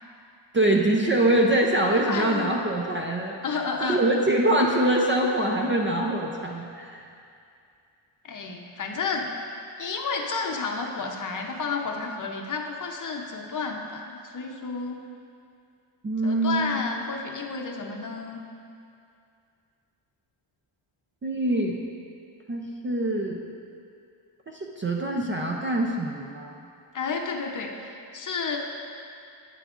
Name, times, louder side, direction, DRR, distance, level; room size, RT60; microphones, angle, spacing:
voice 1, 0.5-7.1 16.0-16.8 21.2-21.8 22.5-23.4 24.5-26.6, right 1 dB, 25° right, 0 dB, 0.4 m, -24 dB
voice 2, 1.9-2.6 3.4-4.0 8.2-9.3 9.8-15.0 16.2-18.4 26.9-28.6, left 4 dB, 40° left, 1 dB, 0.7 m, -31 dB
11.5 x 9.2 x 2.4 m, 2.5 s
wide cardioid pair, 155°, 49 cm